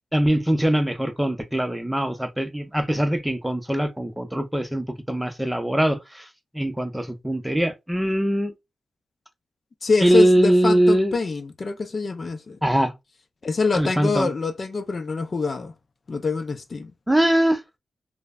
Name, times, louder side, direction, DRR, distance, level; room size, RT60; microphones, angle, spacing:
voice 1, 0.1-6.3 6.5-8.5 10.0-11.1 12.6-12.9 13.7-14.3 17.1-17.6, right 1 dB, 5° right, 0.6 m, -22 dB
voice 2, 9.8-12.6 13.4-15.7 16.1-16.9, left 4 dB, 50° left, 0.5 m, -25 dB
3.1 x 2.1 x 2.2 m
cardioid pair, 80°, 0 cm